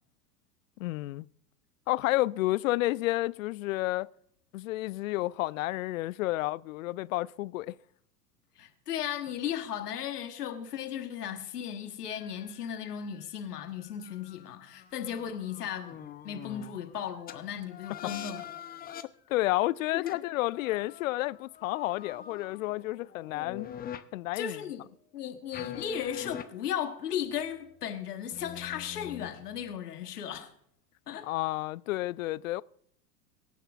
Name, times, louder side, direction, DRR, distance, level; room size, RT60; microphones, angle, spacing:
voice 1, 0.8-1.3 1.9-4.1 4.5-7.8 19.3-23.7 24.1-24.6 31.3-32.6, left 18 dB, 60° left, 0.5 m, -30 dB
voice 2, 8.6-18.4 19.9-20.2 24.3-24.8 25.1-30.5 31.1-31.3, left 9 dB, 75° left, 1.5 m, -36 dB
sound 1, 12.1-16.9 17.3-17.4 17.7-19.0 20.1-24.0 25.5-26.4 27.3-27.8 28.3-29.8, left 9 dB, 20° left, 0.7 m, -45 dB
24.5 x 10.0 x 2.4 m
hypercardioid pair, 90°, 47 cm